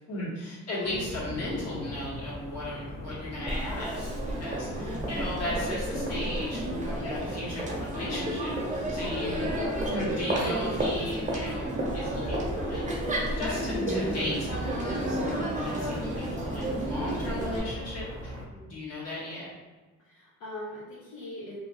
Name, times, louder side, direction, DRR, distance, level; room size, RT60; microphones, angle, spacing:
voice 1, 0.1-4.1 4.3-9.5 9.9-12.8 13.4-18.3 18.6-19.5, left 1 dB, 55° left, -8 dB, 1.4 m, -36 dB
sound 1, 0.8-18.5, equal, 10° left, 0.5 m, -40 dB
Crowd, 3.5-17.6, right 1 dB, 25° right, 0.8 m, -31 dB
voice 2, 4.7-5.1 18.5-18.8 20.0-21.6, left 1 dB, 80° left, -8 dB, 0.7 m, -42 dB
2.7 x 2.2 x 2.9 m, 1.3 s
cardioid pair, 90°, 30 cm